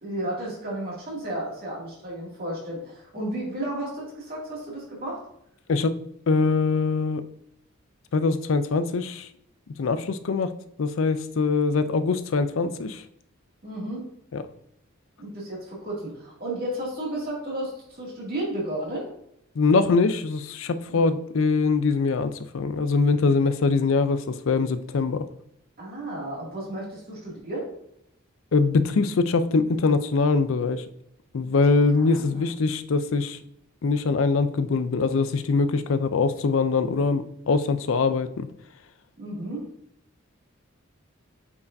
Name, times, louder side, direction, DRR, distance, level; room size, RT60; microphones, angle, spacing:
voice 1, 0.0-5.2 13.6-14.0 15.2-19.1 20.9-21.0 25.8-27.7 31.9-32.4 39.2-39.7, right 1 dB, 45° right, -4 dB, 2.2 m, -33 dB
voice 2, 5.7-6.0 6.3-7.3 8.1-9.3 9.8-13.0 14.3-14.4 19.6-25.3 28.5-30.8 31.3-33.4 33.8-38.5, left 4 dB, 65° left, 12 dB, 0.4 m, -23 dB
8.4 x 4.8 x 2.6 m, 0.76 s
head